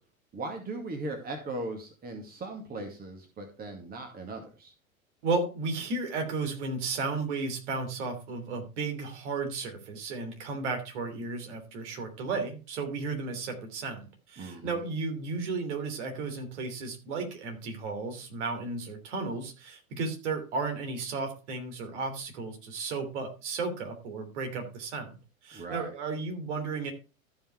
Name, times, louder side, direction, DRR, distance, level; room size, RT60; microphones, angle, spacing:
voice 1, 0.3-4.7 14.4-14.8 25.5-25.9, right 2 dB, 20° right, 4 dB, 2.2 m, -38 dB
voice 2, 5.2-26.9, right 4 dB, 55° right, 5 dB, 3.3 m, -34 dB
13.5 x 5.6 x 4.6 m, 0.32 s
figure-of-eight pair, 85°, 42 cm